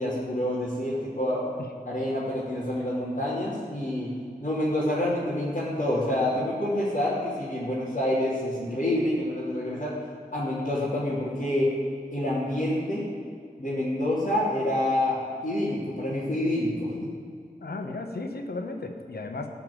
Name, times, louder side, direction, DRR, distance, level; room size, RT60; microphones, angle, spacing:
voice 1, 0.0-1.5 1.8-4.1 4.4-9.9 10.3-11.7 12.1-13.1 13.6-17.1, left 1 dB, 55° left, -10 dB, 3.5 m, -27 dB
voice 2, 17.6-19.5, left 2 dB, 85° left, 5 dB, 1.3 m, -35 dB
14.0 x 5.8 x 8.9 m, 2.1 s
wide cardioid pair, 50°, 16 cm